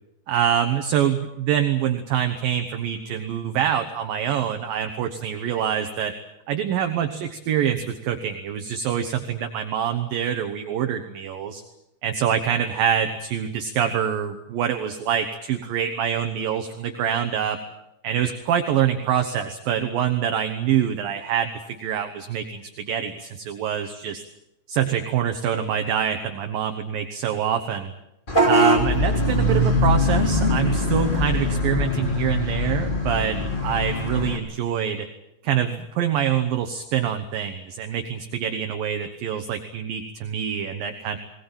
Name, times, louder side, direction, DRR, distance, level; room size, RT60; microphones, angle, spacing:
voice 1, 0.3-6.1 6.5-11.6 12.0-17.6 18.0-24.2 24.7-27.9 28.4-35.1 35.4-41.2, right 9 dB, 65° right, 6 dB, 2.7 m, -25 dB
Vehicle horn car horn honking / Bus, 28.3-34.4, left 1 dB, 15° left, 2.4 m, -22 dB
21.0 x 19.5 x 9.0 m, 0.87 s
omnidirectional pair, 4.9 m